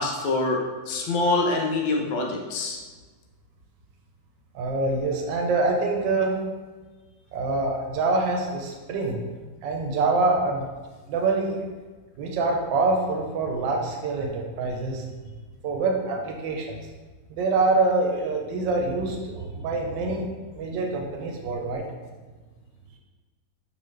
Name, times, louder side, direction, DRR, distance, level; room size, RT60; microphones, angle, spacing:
voice 1, 0.0-2.8, left 2 dB, 80° left, 1 dB, 1.4 m, -25 dB
voice 2, 4.5-6.3 7.3-9.2 9.6-10.7 11.1-11.6 12.2-15.1 15.6-16.8 17.3-20.3 20.5-21.9, right 3 dB, 70° right, 1 dB, 1.2 m, -25 dB
3.9 x 3.1 x 3.1 m, 1.4 s
omnidirectional pair, 2.2 m